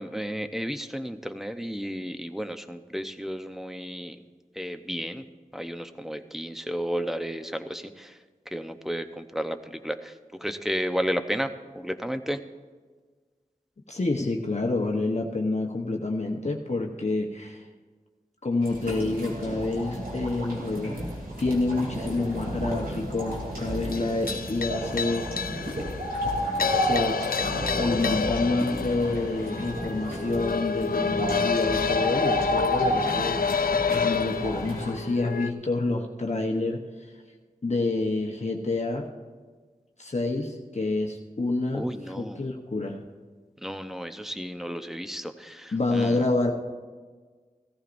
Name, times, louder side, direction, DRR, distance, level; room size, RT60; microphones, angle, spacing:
voice 1, 0.0-4.2 4.6-5.2 5.5-8.1 8.5-9.6 9.8-10.1 10.4-11.5 11.7-12.4 41.7-42.4 43.6-46.2, equal, ahead, 8 dB, 0.7 m, -32 dB
voice 2, 13.9-17.6 18.4-21.1 21.4-25.4 26.8-27.2 27.8-36.8 37.6-39.1 40.0-43.0 45.7-46.5, left 2 dB, 50° left, 1 dB, 1.0 m, -28 dB
Spooky grotto, 18.6-34.9, equal, 85° right, 3.0 m, -32 dB
sound 1, 22.1-35.5, left 6 dB, 80° left, 0.4 m, -30 dB
16.0 x 14.5 x 2.6 m, 1.5 s
wide cardioid pair, 45°, 15 cm